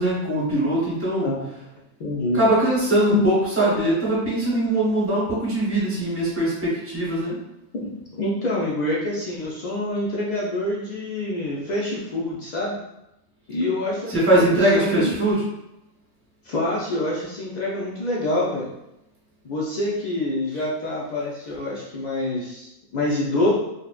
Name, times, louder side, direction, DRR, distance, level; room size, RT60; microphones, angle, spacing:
voice 1, 0.0-1.3 2.3-7.4 14.1-15.4, right 1 dB, 15° right, -7 dB, 0.8 m, -21 dB
voice 2, 2.0-2.4 3.1-3.3 7.7-12.8 13.5-15.2 16.4-18.7 19.4-23.5, left 1 dB, 65° left, -5 dB, 0.4 m, -26 dB
2.8 x 2.0 x 2.3 m, 0.89 s
omnidirectional pair, 1.2 m